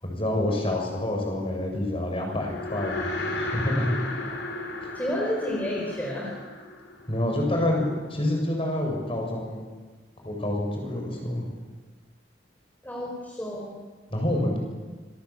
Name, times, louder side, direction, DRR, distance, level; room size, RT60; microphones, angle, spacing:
voice 1, 0.0-3.9 7.1-7.8 8.1-9.6 10.2-11.4 14.1-14.6, left 1 dB, 30° left, 1 dB, 7.4 m, -27 dB
sound 1, 2.3-7.7, left 2 dB, 65° left, 5.1 m, -34 dB
voice 2, 4.9-6.3 12.8-13.8, left 1 dB, 10° left, -2 dB, 5.1 m, -30 dB
27.0 x 22.5 x 8.7 m, 1.4 s
head